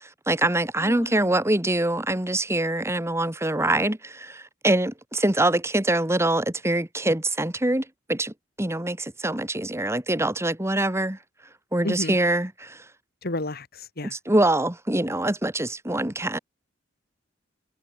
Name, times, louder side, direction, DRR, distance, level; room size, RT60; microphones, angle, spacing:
voice 1, 0.0-11.2 11.7-12.8 14.2-16.4, right 1 dB, 15° right, 1.8 m, -24 dB
voice 2, 0.8-1.3 11.8-12.2 13.2-14.1, left 1 dB, 55° left, 2.3 m, -32 dB
head